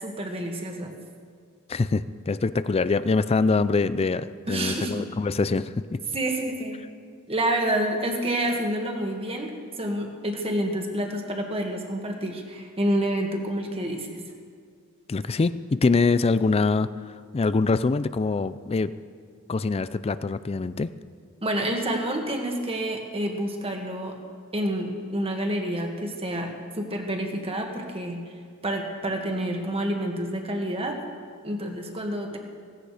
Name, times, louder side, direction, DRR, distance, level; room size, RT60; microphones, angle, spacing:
voice 1, 0.0-0.9 4.5-5.0 6.1-6.8 7.3-14.2 21.4-24.2 24.5-28.2 28.6-31.0 31.4-32.4, right 1 dB, 25° right, 2 dB, 1.8 m, -28 dB
voice 2, 1.7-6.0 15.1-16.9 17.3-18.9 19.5-20.9, left 3 dB, 25° left, 14 dB, 0.4 m, -24 dB
17.0 x 16.5 x 5.0 m, 2.1 s
head